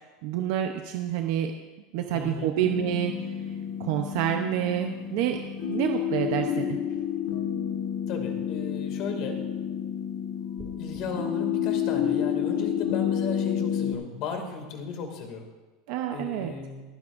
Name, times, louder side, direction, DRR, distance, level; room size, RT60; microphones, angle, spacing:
voice 1, 0.2-1.5 1.9-3.1 3.8-6.8 15.9-16.5, right 10 dB, 60° right, 5 dB, 0.8 m, -28 dB
voice 2, 2.1-2.5 8.1-9.4 10.8-15.5 16.1-16.8, left 5 dB, 50° left, 3 dB, 2.3 m, -35 dB
sound 1, 2.6-13.9, left 9 dB, 65° left, 2.3 m, -30 dB
sound 2, 10.6-11.0, right 2 dB, 15° right, 2.0 m, -44 dB
28.5 x 9.7 x 2.6 m, 1.2 s
supercardioid pair, 155°, 0 cm